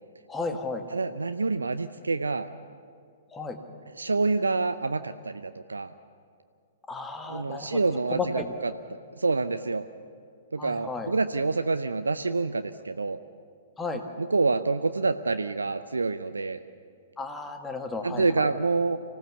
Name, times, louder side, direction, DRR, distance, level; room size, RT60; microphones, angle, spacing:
voice 1, 0.3-0.8 3.3-3.6 6.9-7.8 8.1-8.5 10.6-11.1 13.8-14.0 17.2-18.5, left 3 dB, 10° left, 5 dB, 1.7 m, -33 dB
voice 2, 0.9-2.5 4.0-5.9 7.3-8.7 9.2-9.9 10.5-13.2 14.2-16.6 18.0-19.0, right 3 dB, 75° right, 10 dB, 0.6 m, -27 dB
25.0 x 16.5 x 7.0 m, 2.2 s
figure-of-eight pair, 110°, 0 cm